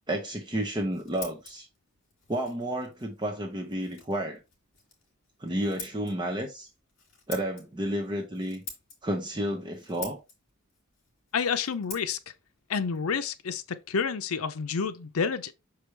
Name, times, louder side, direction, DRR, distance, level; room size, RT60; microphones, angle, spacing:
voice 1, 0.1-1.7 2.3-4.4 5.4-6.7 7.3-8.6 9.0-10.2, right 1 dB, 20° right, 0.7 m, -31 dB
Scissors, 0.6-14.2, left 5 dB, 55° left, 2.9 m, -48 dB
voice 2, 11.3-12.2 12.7-15.5, left 6 dB, 80° left, 0.6 m, -29 dB
6.0 x 4.8 x 3.2 m
head